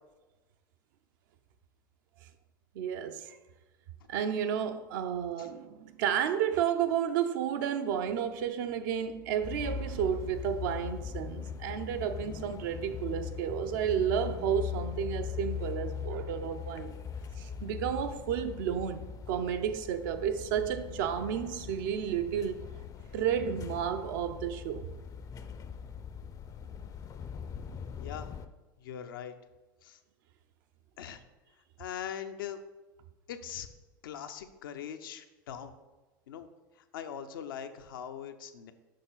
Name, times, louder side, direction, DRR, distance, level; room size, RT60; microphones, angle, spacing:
voice 1, 2.7-3.4 4.1-17.0 17.4-22.7 23.1-24.9, right 8 dB, 65° right, 0.6 m, -32 dB
sound 1, 9.4-28.5, left 8 dB, 30° left, 0.5 m, -40 dB
voice 2, 28.0-28.3 28.8-29.3 29.8-30.0 31.0-31.2 31.8-32.6 33.3-33.7 34.0-35.7 36.3-36.5 36.9-38.7, left 9 dB, 75° left, 0.6 m, -41 dB
6.6 x 5.4 x 3.9 m
hypercardioid pair, 85°, 11 cm